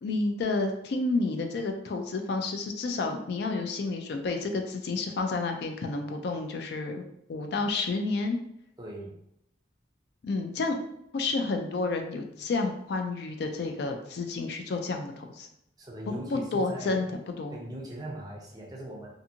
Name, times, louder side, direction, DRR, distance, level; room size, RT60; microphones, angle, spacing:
voice 1, 0.0-8.4 10.2-10.8 11.1-15.5 16.1-17.1 17.4-17.6, left 3 dB, 55° left, 4 dB, 0.3 m, -30 dB
voice 2, 8.8-9.1 15.8-17.2 17.5-19.1, right 1 dB, 20° right, -2 dB, 0.5 m, -40 dB
2.5 x 2.5 x 2.7 m, 0.76 s
head